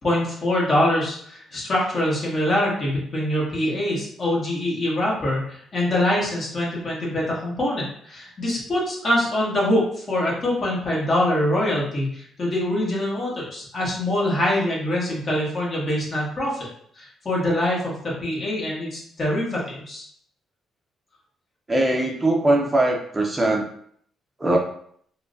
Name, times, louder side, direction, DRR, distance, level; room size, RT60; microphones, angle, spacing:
voice 1, 0.0-16.7 17.0-20.1, left 1 dB, 40° left, -5 dB, 1.5 m, -24 dB
voice 2, 21.7-23.6 24.4-24.6, right 1 dB, 20° right, 0 dB, 0.5 m, -21 dB
4.5 x 2.2 x 2.6 m, 0.63 s
cardioid pair, 90°, 0 cm